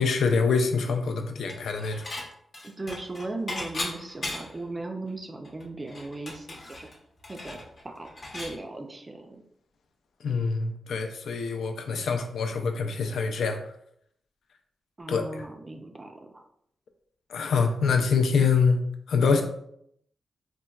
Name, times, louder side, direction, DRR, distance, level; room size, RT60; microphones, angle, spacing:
voice 1, 0.0-2.1 10.2-13.6 15.1-15.5 17.3-19.4, left 5 dB, 75° left, 6 dB, 0.4 m, -25 dB
Dishes pots and pans / Chink clink, 1.5-2.3 2.5-4.7 5.1-5.2 5.4-8.6, left 2 dB, 35° left, 0.7 m, -37 dB
voice 2, 2.6-6.9 7.3-7.6 7.8-8.1 8.3-9.4 15.0-16.4, right 2 dB, 20° right, 4 dB, 0.3 m, -37 dB
3.9 x 2.1 x 2.3 m, 0.71 s
wide cardioid pair, 155°, 0 cm